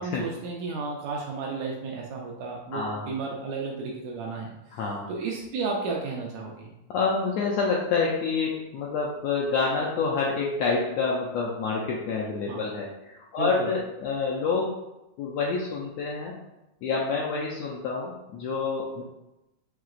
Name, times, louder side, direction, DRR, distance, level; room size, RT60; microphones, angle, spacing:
voice 1, 0.0-4.5 5.1-6.7 12.5-12.7 13.4-13.7, right 4 dB, 75° right, -1 dB, 1.7 m, -33 dB
voice 2, 2.7-3.1 4.7-5.1 6.9-14.7 15.2-16.3 16.8-19.0, left 4 dB, 80° left, -3 dB, 1.5 m, -28 dB
5.8 x 2.8 x 2.4 m, 0.94 s
omnidirectional pair, 3.5 m